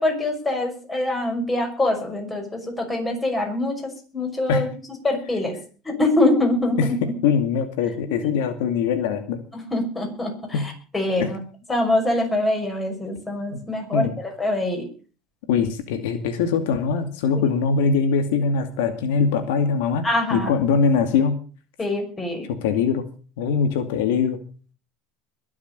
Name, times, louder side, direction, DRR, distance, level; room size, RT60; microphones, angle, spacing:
voice 1, 0.0-4.7 5.0-5.6 5.8-7.0 8.1-8.2 9.5-11.4 11.7-14.8 20.0-20.5 21.8-22.5, left 2 dB, 10° left, 3 dB, 5.8 m, -24 dB
voice 2, 7.2-9.4 10.5-10.7 11.2-11.3 13.5-13.6 13.9-14.1 15.5-21.4 22.5-23.0 23.4-24.4, left 6 dB, 85° left, 8 dB, 2.4 m, -22 dB
22.0 x 7.3 x 6.8 m, 0.39 s
supercardioid pair, 140°, 0 cm